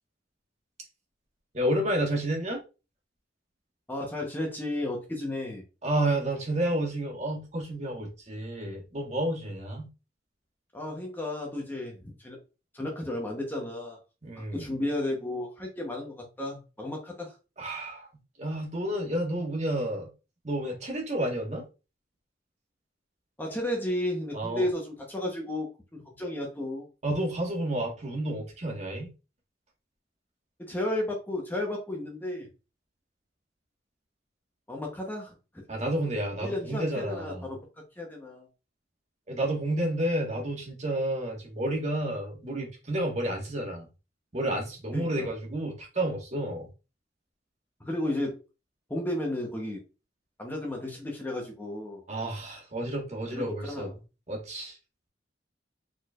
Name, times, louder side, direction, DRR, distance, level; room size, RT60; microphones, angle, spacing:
voice 1, 1.5-2.6 5.8-9.9 14.2-14.7 17.6-18.1 18.4-20.1 20.4-21.6 24.3-24.7 27.0-29.1 35.7-37.5 39.3-43.8 44.3-46.7 52.1-53.9 54.3-54.8, right 1 dB, 40° right, 1.5 m, -30 dB
voice 2, 3.9-5.6 10.7-12.4 12.7-14.0 14.4-17.3 23.4-26.9 30.6-32.5 34.7-35.6 36.4-37.6 38.0-38.5 44.9-45.3 47.8-48.4 48.9-49.8 50.4-52.0 53.3-53.9, left 1 dB, 10° left, 0.9 m, -33 dB
4.6 x 4.3 x 2.4 m
head